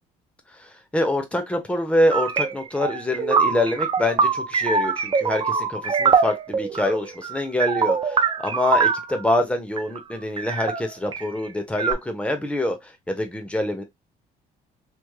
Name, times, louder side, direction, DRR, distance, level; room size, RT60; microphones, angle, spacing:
voice 1, 0.6-13.8, left 1 dB, 5° left, 1.0 m, -25 dB
sound 1, 2.1-9.2 9.8-10.0 10.4-11.3 11.8-11.9, right 5 dB, 30° right, 0.6 m, -23 dB
3.3 x 3.2 x 2.3 m
cardioid pair, 110°, 17 cm